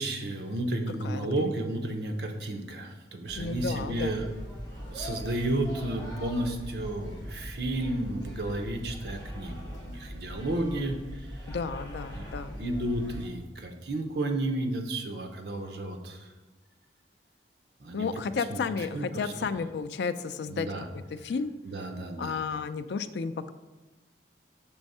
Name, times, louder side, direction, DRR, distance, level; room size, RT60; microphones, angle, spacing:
voice 1, 0.0-4.3 4.7-11.4 12.1-12.3 12.5-16.3 17.8-18.1 18.5-18.6 18.9-19.3 20.5-20.9 21.7-22.4, right 1 dB, 70° right, 4 dB, 0.8 m, -32 dB
voice 2, 1.0-1.5 3.4-4.3 11.5-12.5 17.9-20.7 20.9-21.5 22.2-23.5, left 5 dB, 75° left, 11 dB, 0.3 m, -32 dB
sound 1, 3.3-13.3, equal, 25° left, 1.4 m, -41 dB
6.2 x 3.5 x 5.4 m, 1.2 s
head